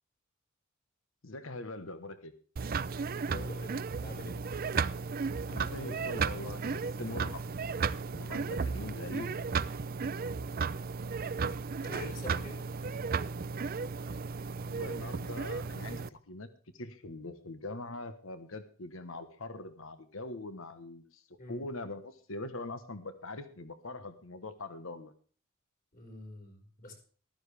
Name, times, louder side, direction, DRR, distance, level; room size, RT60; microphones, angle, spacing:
voice 1, 1.2-2.3 5.5-7.4 8.1-9.4 14.7-16.5 16.7-25.1, left 2 dB, 80° left, 10 dB, 1.3 m, -42 dB
sound 1, 2.6-16.1, right 5 dB, 45° right, 0.5 m, -34 dB
voice 2, 3.3-4.4 11.8-12.6 21.4-21.6 25.9-26.9, left 1 dB, 45° left, 0 dB, 4.9 m, -45 dB
15.0 x 13.5 x 3.4 m, 0.43 s
head